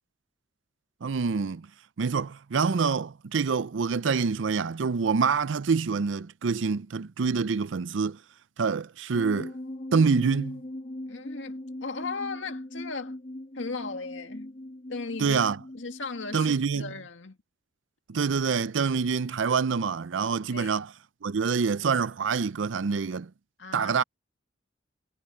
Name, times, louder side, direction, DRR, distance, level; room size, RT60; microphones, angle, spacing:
voice 1, 1.0-1.7 2.0-8.2 8.6-9.5 9.9-10.6 15.2-15.6 16.3-16.9 18.1-20.9 21.2-23.3 23.7-24.0, right 5 dB, 80° right, 0.5 m, -26 dB
sound 1, 9.1-16.6, left 1 dB, 40° left, 2.3 m, -40 dB
voice 2, 11.1-13.2 13.5-14.6 14.9-15.4 15.7-17.4 20.5-20.8 23.6-23.9, left 4 dB, 80° left, 2.1 m, -37 dB
head